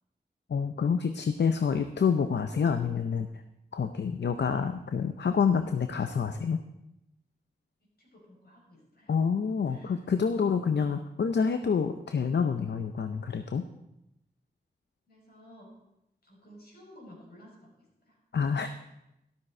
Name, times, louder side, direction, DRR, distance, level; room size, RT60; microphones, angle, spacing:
voice 1, 0.5-3.3 3.7-6.6 9.1-13.6 18.3-18.7, left 6 dB, 85° left, 8 dB, 0.6 m, -27 dB
voice 2, 7.8-9.1 9.6-10.0 15.1-15.7 16.2-18.2, equal, 70° left, -3 dB, 5.5 m, -54 dB
13.0 x 12.5 x 4.4 m, 0.85 s
wide cardioid pair, 90°, 17 cm